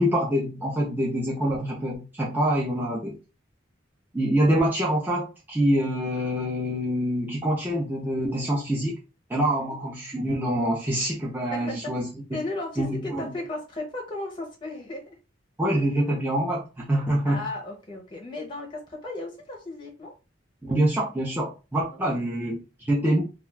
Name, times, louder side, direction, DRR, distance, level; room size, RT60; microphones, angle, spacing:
voice 1, 0.0-3.2 4.1-8.9 9.3-12.0 12.8-13.3 15.6-17.4 20.6-23.2, right 1 dB, 10° right, -4 dB, 0.5 m, -25 dB
voice 2, 11.5-11.9 12.3-15.2 17.2-20.1 22.1-22.2, left 2 dB, 25° left, 0 dB, 0.7 m, -35 dB
2.3 x 2.3 x 3.2 m, 0.30 s
head